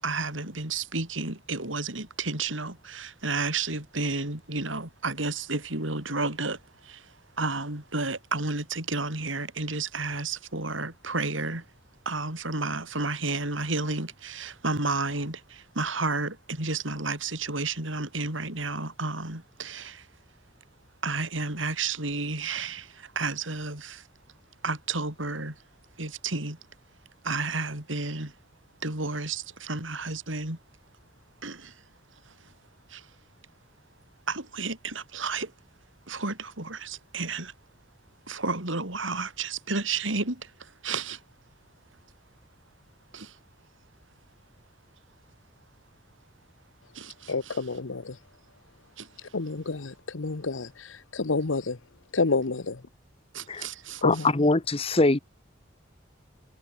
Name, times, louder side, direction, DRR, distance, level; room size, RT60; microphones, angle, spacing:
voice 1, 0.0-6.6 6.8-7.0 7.4-11.6 12.0-20.0 21.0-24.0 24.6-25.5 26.0-26.6 27.2-28.3 28.8-30.6 31.4-31.7 32.9-33.0 34.3-35.5 36.1-37.5 38.3-40.5 40.8-41.2 43.1-43.3 46.9-47.6 49.0-49.1 53.3-54.0, right 3 dB, 80° right, 6.2 m, -31 dB
voice 2, 47.3-48.1 49.3-50.7 51.1-51.8 52.1-52.8 54.0-54.2, left 3 dB, 85° left, 1.0 m, -28 dB
voice 3, 54.0-55.2, left 2 dB, 30° left, 1.0 m, -22 dB
head